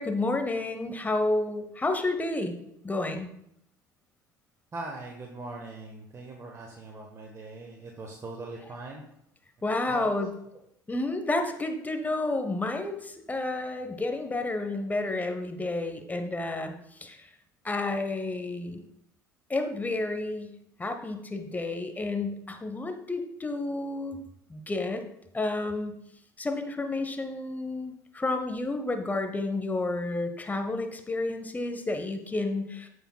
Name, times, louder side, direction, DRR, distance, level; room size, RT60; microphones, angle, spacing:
voice 1, 0.0-2.5 2.8-3.3 9.6-10.3 10.9-16.7 17.0-17.3 17.6-18.8 19.5-24.2 24.5-25.0 25.3-26.0 26.4-32.9, left 2 dB, 15° left, 6 dB, 1.1 m, -30 dB
voice 2, 4.7-9.0 9.9-10.5, right 2 dB, 25° right, 1 dB, 1.2 m, -41 dB
14.5 x 4.8 x 2.3 m, 0.75 s
figure-of-eight pair, 65°, 11 cm